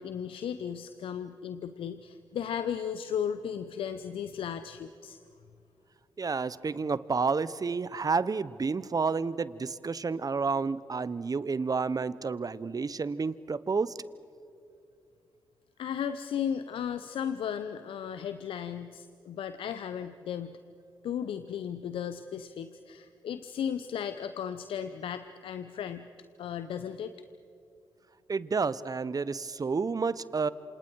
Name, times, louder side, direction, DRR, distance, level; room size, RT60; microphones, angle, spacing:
voice 1, 0.0-5.2 15.8-20.6 21.0-26.1 26.4-27.1, left 8 dB, 70° left, 11 dB, 0.9 m, -35 dB
voice 2, 6.2-13.9 28.3-30.5, right 4 dB, 40° right, 17 dB, 1.0 m, -30 dB
28.0 x 27.5 x 4.8 m, 2.6 s
hypercardioid pair, 40°, 9 cm